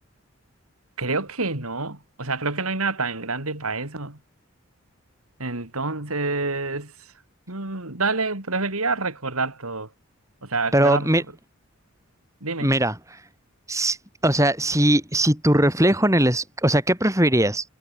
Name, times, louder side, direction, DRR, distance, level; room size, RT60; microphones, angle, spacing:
voice 1, 1.0-4.2 5.4-7.1 7.5-9.9 10.4-11.1 12.4-12.8, right 3 dB, 85° right, 3.9 m, -27 dB
voice 2, 10.7-11.2 12.6-12.9 13.7-14.0 14.2-17.6, right 1 dB, 15° right, 6.6 m, -20 dB
head